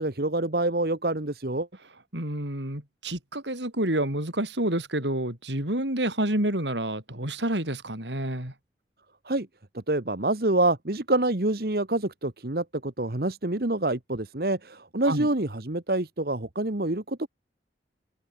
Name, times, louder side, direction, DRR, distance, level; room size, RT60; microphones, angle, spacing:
voice 1, 0.0-1.7 9.2-9.5 9.7-17.3, right 2 dB, 55° right, 1.6 m, -27 dB
voice 2, 2.1-8.5 15.1-15.3, right 1 dB, 85° right, 6.2 m, -28 dB
head